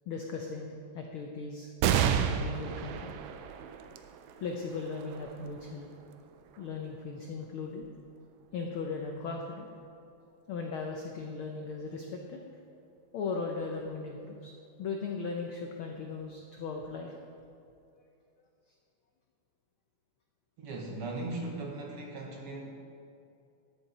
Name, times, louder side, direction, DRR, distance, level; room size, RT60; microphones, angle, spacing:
voice 1, 0.1-1.7 2.0-3.1 3.5-3.6 4.4-5.9 6.6-7.9 8.5-9.7 10.5-12.4 13.1-14.5 14.8-17.1 17.9-18.0, left 4 dB, 85° left, 2 dB, 1.1 m, -38 dB
sound 1, 1.8-8.7 9.3-9.4 10.5-11.1, right 9 dB, 75° right, 1.7 m, -34 dB
voice 2, 20.6-22.9, right 2 dB, 60° right, 1 dB, 1.7 m, -38 dB
12.5 x 8.9 x 4.2 m, 2.6 s
omnidirectional pair, 3.4 m